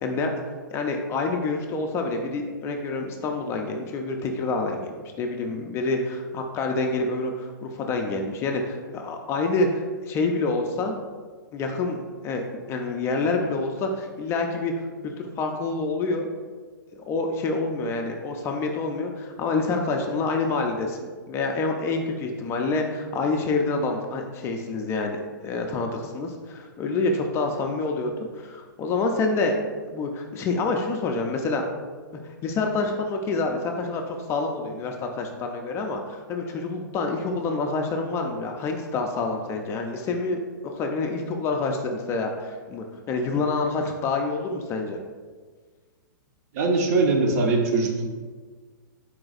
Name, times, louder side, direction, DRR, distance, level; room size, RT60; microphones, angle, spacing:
voice 1, 0.0-11.0 11.5-12.0 12.2-16.3 17.1-29.6 29.9-31.6 32.2-45.0, left 3 dB, 25° left, 3 dB, 0.3 m, -27 dB
voice 2, 46.5-48.1, right 3 dB, 45° right, 2 dB, 0.7 m, -22 dB
4.2 x 2.3 x 3.9 m, 1.5 s
hypercardioid pair, 115°, 11 cm